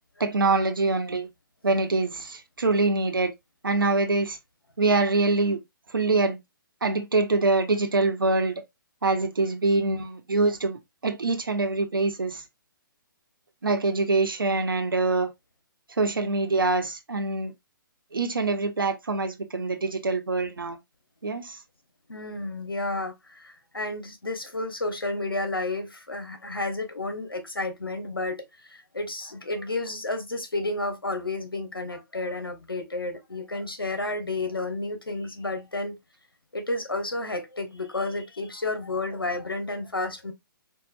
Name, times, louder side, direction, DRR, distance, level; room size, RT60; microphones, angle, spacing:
voice 1, 0.2-1.3 1.6-3.3 3.6-4.4 4.8-5.6 5.9-6.4 6.8-8.6 9.0-12.4 13.6-15.3 16.0-17.5 18.1-20.8 21.2-21.6, right 3 dB, 75° right, 1.0 m, -24 dB
voice 2, 22.1-28.4 28.9-36.0 36.5-40.3, left 2 dB, 85° left, 1.2 m, -31 dB
4.7 x 2.6 x 2.5 m
figure-of-eight pair, 130°, 12 cm